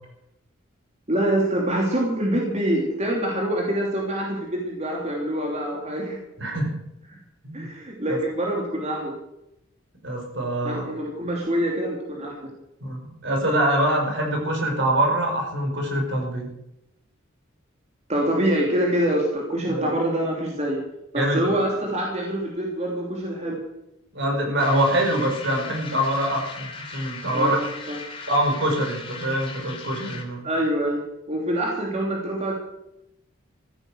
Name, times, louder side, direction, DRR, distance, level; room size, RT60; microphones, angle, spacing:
voice 1, 1.1-6.2 7.1-7.2 7.5-9.1 10.6-12.5 18.1-20.8 21.1-23.6 27.3-28.0 30.4-32.5, right 1 dB, 35° right, -1 dB, 3.0 m, -25 dB
voice 2, 6.4-6.8 7.4-7.7 8.1-8.2 10.0-10.8 12.8-16.5 19.7-19.9 21.2-21.4 24.1-27.6 28.3-30.4, right 1 dB, 60° right, 2 dB, 5.1 m, -24 dB
sound 1, 24.6-30.4, left 4 dB, 25° left, 2.9 m, -38 dB
15.0 x 13.5 x 6.2 m, 0.86 s
head